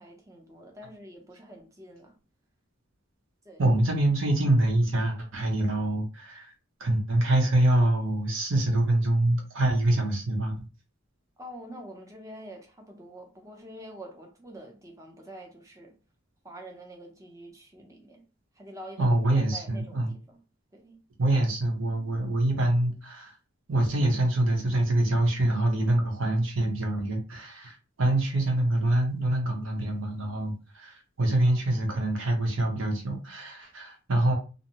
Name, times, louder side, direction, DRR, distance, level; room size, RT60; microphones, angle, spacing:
voice 1, 0.0-2.2 3.4-3.6 11.4-16.0 16.4-18.3 18.5-19.2 19.5-20.4 20.7-21.0, right 1 dB, 15° right, 0.6 m, -46 dB
voice 2, 3.6-6.5 6.8-10.5 19.0-20.1 21.2-23.3 23.7-34.3, right 1 dB, 65° right, 0.8 m, -25 dB
2.6 x 2.1 x 2.8 m
head